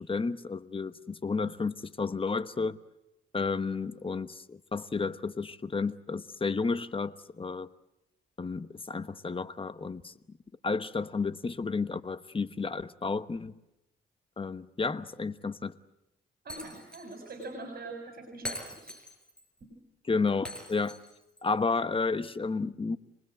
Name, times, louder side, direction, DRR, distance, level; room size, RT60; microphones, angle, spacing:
voice 1, 0.0-2.8 3.3-7.7 8.4-10.4 10.6-13.6 14.4-15.7 20.1-21.0 21.4-23.0, left 4 dB, 25° left, 12 dB, 1.1 m, -32 dB
voice 2, 16.4-19.0 19.6-19.7, right 2 dB, 50° right, 2 dB, 6.6 m, -43 dB
Shatter, 16.5-17.2 17.4-17.5 18.4-19.4 20.4-21.4, left 1 dB, 5° left, 7.0 m, -42 dB
27.0 x 20.5 x 8.0 m, 0.91 s
cardioid pair, 80°, 20 cm